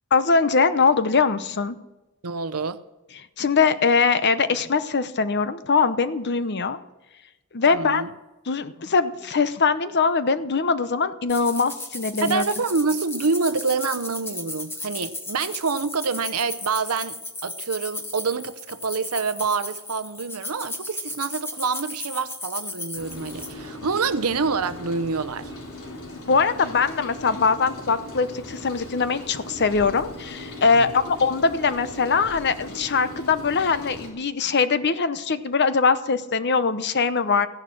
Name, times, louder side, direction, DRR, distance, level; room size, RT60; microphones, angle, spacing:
voice 1, 0.1-1.8 3.4-6.8 7.5-8.0 8.5-12.4 26.3-37.5, left 5 dB, 50° left, 0.8 m, -22 dB
voice 2, 2.2-2.8 7.7-8.1 12.2-25.5 30.7-30.9, right 4 dB, 90° right, 0.8 m, -27 dB
sound 1, 11.3-23.5, left 2 dB, 10° left, 1.2 m, -35 dB
Rain, 23.0-34.1, left 1 dB, 85° left, 3.7 m, -39 dB
15.0 x 11.0 x 6.3 m
head